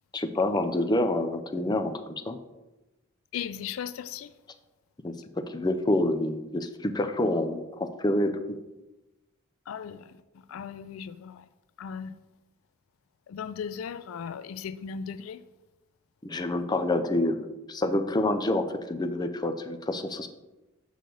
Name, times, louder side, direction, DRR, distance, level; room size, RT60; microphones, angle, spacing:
voice 1, 0.1-2.4 5.0-5.1 5.5-8.3 16.2-20.3, left 1 dB, 20° left, 0.5 m, -27 dB
voice 2, 3.3-4.3 9.7-10.0 10.5-11.3 11.8-12.1 13.3-15.4, left 7 dB, 80° left, 0.4 m, -36 dB
6.6 x 6.5 x 3.9 m
head